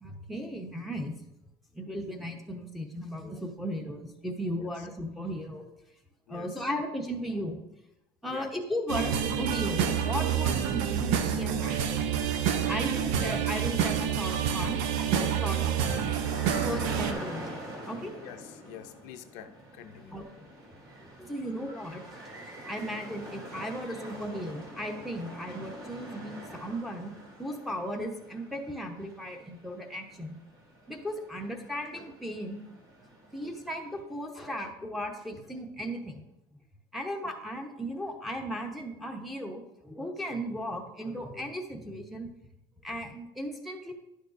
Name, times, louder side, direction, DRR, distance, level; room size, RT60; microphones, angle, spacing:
voice 1, 0.0-1.2 1.7-5.7 6.3-7.6 8.2-11.8 12.7-14.8 15.1-15.6 16.6-18.1 20.1-20.3 21.2-22.1 22.7-27.1 27.4-30.4 30.9-32.6 33.3-36.2 36.9-42.3 42.8-43.9, equal, ahead, 0.9 m, -36 dB
sound 1, 8.9-17.1, right 8 dB, 85° right, 0.7 m, -28 dB
sound 2, 14.1-34.0, right 1 dB, 35° right, 3.0 m, -45 dB
voice 2, 18.2-20.2, left 10 dB, 70° left, 0.6 m, -46 dB
10.5 x 6.6 x 2.5 m
cardioid pair, 135°, 13 cm